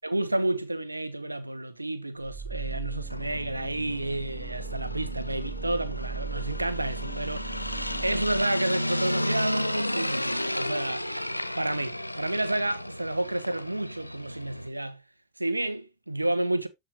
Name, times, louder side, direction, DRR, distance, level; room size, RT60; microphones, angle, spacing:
voice 1, 0.0-7.5 8.0-11.1 11.5-15.0 15.4-16.7, right 1 dB, 85° right, 1.0 m, -30 dB
sound 1, 2.2-8.4, right 5 dB, 5° right, 2.1 m, -38 dB
sound 2, 3.1-14.7, left 1 dB, 90° left, 0.6 m, -33 dB
13.0 x 4.7 x 2.9 m
figure-of-eight pair, 90°, 0 cm